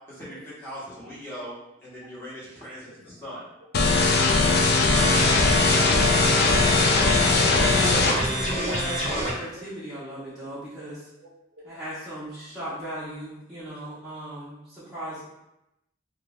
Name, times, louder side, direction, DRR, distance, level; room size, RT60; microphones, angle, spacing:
voice 1, 0.1-1.5 1.8-3.5 3.8-4.1, equal, 10° left, -9 dB, 1.1 m, -40 dB
sound 1, 3.7-8.1, left 3 dB, 55° left, 0.4 m, -20 dB
sound 2, 4.9-9.3, equal, 35° left, 1.4 m, -27 dB
voice 2, 7.6-11.0 11.6-15.2, right 1 dB, 5° right, -12 dB, 0.6 m, -36 dB
voice 3, 11.2-11.7, right 2 dB, 60° right, -3 dB, 0.6 m, -51 dB
2.6 x 2.3 x 3.4 m, 0.88 s
head